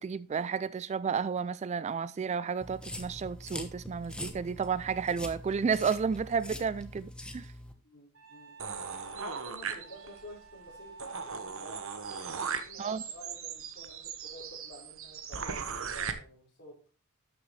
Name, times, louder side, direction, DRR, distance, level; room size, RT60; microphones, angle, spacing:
voice 1, 0.0-7.5 12.8-13.0, right 6 dB, 30° right, 0.3 m, -32 dB
sound 1, 2.6-7.7, left 1 dB, 5° left, 1.1 m, -43 dB
voice 2, 7.8-8.6 9.2-11.8 12.6-16.8, equal, 50° left, 5.2 m, -50 dB
Wind instrument woodwind instrument, 8.1-11.8, right 4 dB, 80° right, 4.5 m, -53 dB
sound 2, 8.6-10.3 10.7-10.8 11.0-16.1, right 6 dB, 65° right, 1.1 m, -38 dB
12.5 x 6.9 x 3.2 m
head